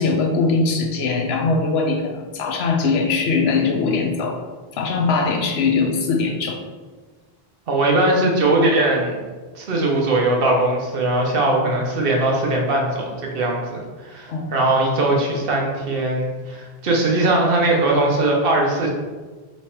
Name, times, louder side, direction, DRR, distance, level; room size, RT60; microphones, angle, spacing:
voice 1, 0.0-4.4 4.7-6.6 14.3-14.5, left 4 dB, 80° left, 3 dB, 0.9 m, -21 dB
voice 2, 7.7-9.2 9.5-18.9, right 2 dB, 65° right, -1 dB, 1.0 m, -20 dB
3.4 x 3.1 x 4.4 m, 1.4 s
omnidirectional pair, 1.0 m